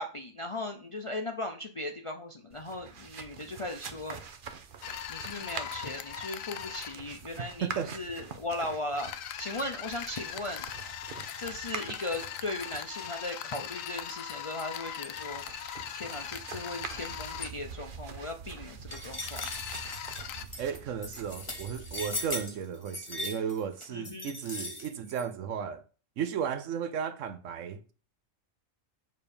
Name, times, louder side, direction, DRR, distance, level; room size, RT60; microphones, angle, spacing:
voice 1, 0.0-4.2 5.1-10.7 11.4-15.4 15.9-19.5 23.9-24.3, left 1 dB, 40° left, 0.4 m, -38 dB
sound 1, 2.5-22.4, right 6 dB, 50° right, 0.8 m, -46 dB
sound 2, 4.8-6.9 8.9-17.5 19.2-20.4, left 10 dB, 80° left, 1.0 m, -40 dB
voice 2, 7.4-8.0 20.6-25.8 26.2-27.9, right 8 dB, 70° right, 1.0 m, -34 dB
sound 3, 18.9-25.2, left 2 dB, 25° left, 1.6 m, -39 dB
6.7 x 3.6 x 5.2 m
omnidirectional pair, 1.4 m